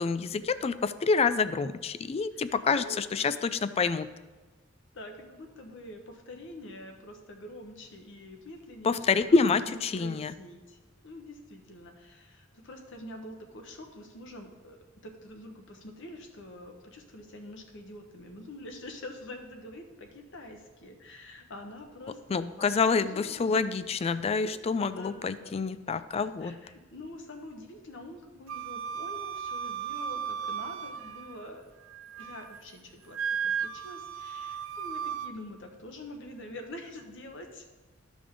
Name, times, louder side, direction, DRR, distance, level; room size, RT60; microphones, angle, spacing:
voice 1, 0.0-4.1 8.8-10.3 22.3-26.6, left 4 dB, 30° left, 14 dB, 0.3 m, -27 dB
voice 2, 2.3-3.4 4.9-10.8 11.0-23.6 24.9-25.6 26.4-31.6 32.2-33.2 33.4-37.6, left 1 dB, 65° left, 4 dB, 1.1 m, -46 dB
Wind instrument woodwind instrument, 28.5-31.5 31.9-32.6 33.1-35.3, right 7 dB, 75° right, 0.4 m, -35 dB
13.0 x 5.1 x 3.7 m, 1.2 s
head